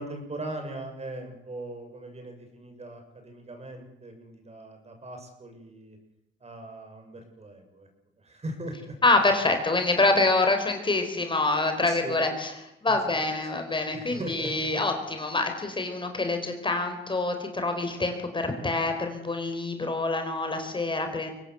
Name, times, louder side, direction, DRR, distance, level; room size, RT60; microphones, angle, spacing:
voice 1, 0.0-6.0 6.4-7.9 8.2-8.9 11.9-12.2 12.9-13.0 13.9-14.7, right 1 dB, 30° right, 5 dB, 7.1 m, -39 dB
voice 2, 9.0-12.5 12.8-21.3, left 2 dB, 25° left, 5 dB, 4.6 m, -26 dB
23.5 x 18.0 x 8.1 m, 0.86 s
cardioid pair, 90°, 20 cm